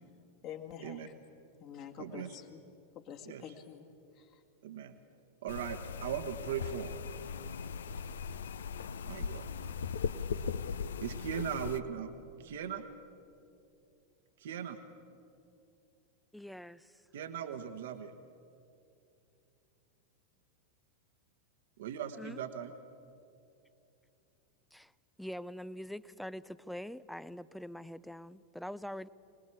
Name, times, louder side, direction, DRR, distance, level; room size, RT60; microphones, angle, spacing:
voice 1, 0.4-1.1 1.6-2.6 2.9-3.9 4.1-4.4, left 8 dB, 40° left, 2.0 m, -47 dB
voice 2, 2.0-2.3 3.3-3.4 4.6-5.0 5.4-7.0 9.1-9.5 11.0-12.1 12.4-12.9 14.4-14.8 17.1-18.1 21.8-22.7, right 9 dB, 60° right, 1.2 m, -39 dB
sound 1, 5.5-11.8, left 6 dB, 65° left, 0.7 m, -39 dB
voice 3, 16.3-17.0 22.2-22.4 24.7-24.9 25.2-29.1, equal, ahead, 0.5 m, -44 dB
25.0 x 20.0 x 8.6 m
figure-of-eight pair, 90°, 0 cm